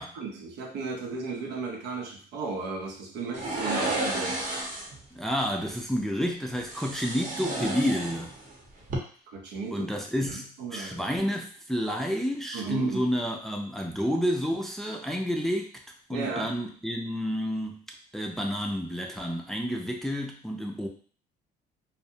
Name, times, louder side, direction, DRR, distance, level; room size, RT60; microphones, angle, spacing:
voice 1, 0.0-4.4 9.3-9.9 10.2-11.1 12.5-13.0 16.1-16.5, right 4 dB, 85° right, 2 dB, 0.6 m, -35 dB
sound 1, 3.3-5.0 6.6-8.5 8.8-9.0, right 2 dB, 55° right, 0.8 m, -32 dB
voice 2, 5.2-8.3 9.7-15.7 16.1-17.8 18.1-20.9, equal, ahead, 2 dB, 0.4 m, -30 dB
2.5 x 2.1 x 2.7 m, 0.44 s
cardioid pair, 110°, 17 cm